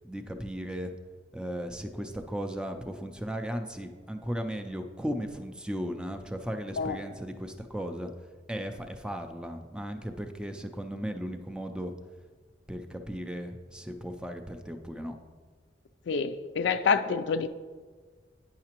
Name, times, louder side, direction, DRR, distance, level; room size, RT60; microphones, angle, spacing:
voice 1, 0.0-0.9 1.3-8.1 8.5-11.9 12.7-15.1, equal, 5° right, 5 dB, 0.4 m, -36 dB
voice 2, 16.1-17.5, left 5 dB, 75° left, 10 dB, 0.4 m, -27 dB
9.4 x 5.7 x 2.9 m, 1.5 s
head